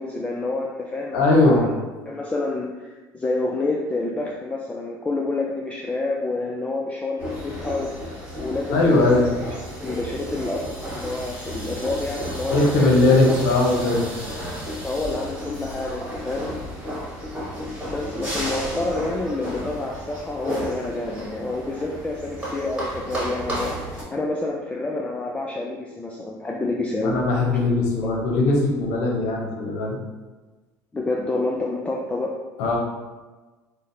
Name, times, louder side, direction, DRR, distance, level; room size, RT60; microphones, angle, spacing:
voice 1, 0.0-1.7 2.0-7.9 8.4-9.3 9.8-13.3 14.8-16.5 17.9-27.2 27.5-27.6 30.9-32.4, left 2 dB, 15° left, -1 dB, 0.3 m, -28 dB
voice 2, 1.1-1.6 8.7-9.3 12.5-14.1 27.0-30.0 32.6-32.8, left 2 dB, 80° left, -1 dB, 0.7 m, -19 dB
sound 1, 7.2-24.0, equal, 15° right, 1.3 m, -33 dB
3.8 x 2.1 x 2.5 m, 1.2 s
supercardioid pair, 90°, 9 cm